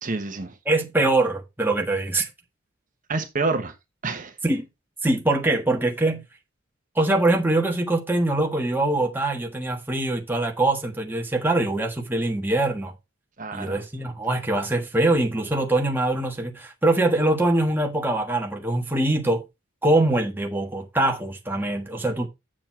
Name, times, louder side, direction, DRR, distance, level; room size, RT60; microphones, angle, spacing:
voice 1, 0.0-0.5 3.1-3.7 4.0-4.3 13.4-13.8, right 3 dB, 40° right, 1.1 m, -28 dB
voice 2, 0.6-2.3 4.4-4.6 5.0-6.2 6.9-12.9 13.5-19.4 19.8-22.3, right 2 dB, 10° right, 1.4 m, -23 dB
7.5 x 7.1 x 4.4 m
head